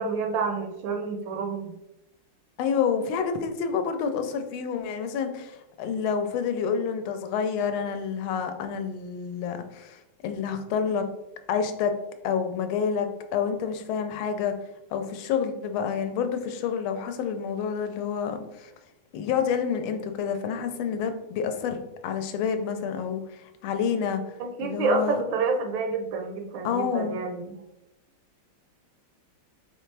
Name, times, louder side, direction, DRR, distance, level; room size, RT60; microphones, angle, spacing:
voice 1, 0.0-1.7 24.4-27.5, right 4 dB, 75° right, 4 dB, 1.2 m, -28 dB
voice 2, 2.6-11.0 11.5-11.9 12.2-14.5 14.9-18.7 19.1-24.2 24.6-25.2 26.6-27.2, left 7 dB, 85° left, 7 dB, 1.4 m, -28 dB
4.2 x 3.3 x 3.2 m, 0.89 s
omnidirectional pair, 2.2 m